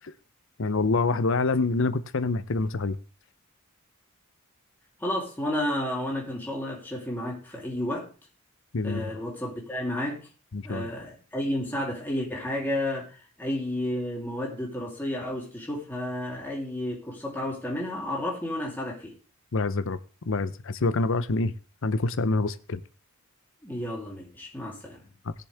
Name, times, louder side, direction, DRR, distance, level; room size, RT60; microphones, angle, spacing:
voice 1, 0.6-3.0 8.7-9.0 10.5-10.9 19.5-20.0 20.3-21.5 21.8-22.8 25.3-25.4, left 3 dB, 60° left, 14 dB, 0.7 m, -26 dB
voice 2, 5.0-8.1 8.8-10.3 10.6-19.1 23.6-25.1, left 1 dB, 10° left, -3 dB, 3.4 m, -31 dB
19.0 x 6.9 x 3.5 m, 0.34 s
head